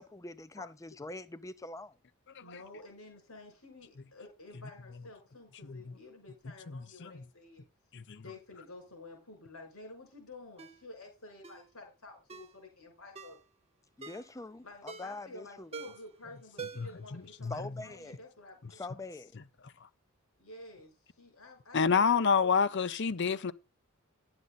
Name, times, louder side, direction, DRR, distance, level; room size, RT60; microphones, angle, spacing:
voice 1, 0.0-2.0 14.0-15.7 17.5-18.2 18.7-19.4, left 2 dB, 15° left, 0.6 m, -44 dB
voice 2, 2.4-7.6 8.1-13.4 14.6-19.0 20.4-22.5 22.8-22.9 23.2-23.4, left 2 dB, 80° left, 5.9 m, -51 dB
voice 3, 5.6-5.9 6.7-7.2 7.9-8.2 16.8-17.5 21.7-23.5, left 6 dB, 55° left, 0.6 m, -29 dB
Ringtone, 10.6-10.8 11.4-11.7 12.3-12.5 13.1-13.4 14.0-14.3 14.9-15.2 15.7-16.1 16.6-17.0 17.3-17.4, right 5 dB, 30° right, 0.8 m, -45 dB
11.0 x 7.9 x 4.1 m
head